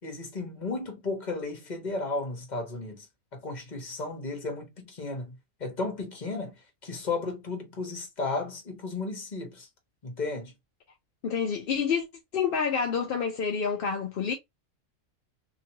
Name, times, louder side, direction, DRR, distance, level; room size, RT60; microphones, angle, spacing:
voice 1, 0.0-3.1 3.3-9.7 10.0-10.5, left 3 dB, 35° left, 1.1 m, -34 dB
voice 2, 11.2-12.0 12.3-14.3, left 6 dB, 60° left, 0.6 m, -28 dB
3.0 x 2.9 x 2.7 m
omnidirectional pair, 1.4 m